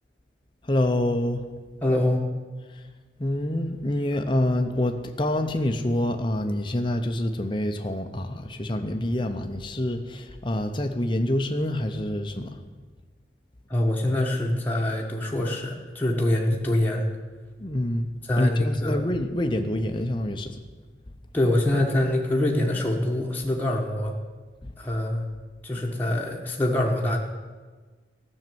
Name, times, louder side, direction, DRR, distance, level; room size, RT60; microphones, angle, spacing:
voice 1, 0.7-1.5 3.2-12.6 17.6-20.6 24.6-24.7, left 1 dB, 25° left, 5 dB, 0.8 m, -26 dB
voice 2, 1.8-2.3 13.7-17.1 18.3-19.0 21.3-24.1 24.8-25.3 25.6-27.2, left 1 dB, 10° left, -2 dB, 1.3 m, -24 dB
13.5 x 6.6 x 9.3 m, 1.4 s
head